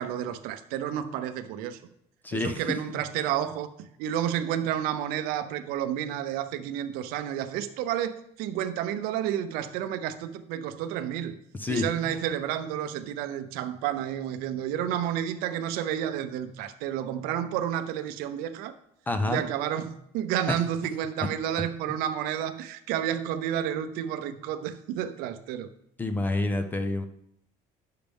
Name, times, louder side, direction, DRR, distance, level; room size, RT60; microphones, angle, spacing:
voice 1, 0.0-1.8 2.3-11.4 11.7-18.7 19.3-25.7, right 10 dB, 70° right, 0.7 m, -31 dB
voice 2, 2.2-2.6 11.6-12.2 19.1-19.4 20.5-20.6 26.0-27.0, left 2 dB, 10° left, 0.4 m, -28 dB
10.0 x 6.6 x 3.5 m
cardioid pair, 170°, 16 cm